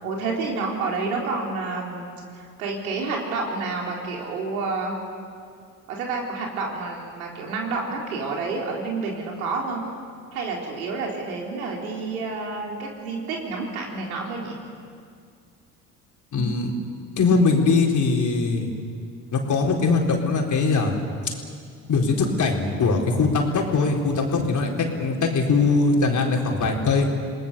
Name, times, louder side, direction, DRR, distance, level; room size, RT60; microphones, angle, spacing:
voice 1, 0.0-5.0 5.9-9.8 10.3-14.6, right 3 dB, 85° right, -1 dB, 4.2 m, -29 dB
voice 2, 16.3-16.7 17.2-18.7 19.3-20.9 21.9-27.1, left 4 dB, 45° left, 1 dB, 4.3 m, -21 dB
28.5 x 19.0 x 7.0 m, 2.2 s
hypercardioid pair, 65°, 42 cm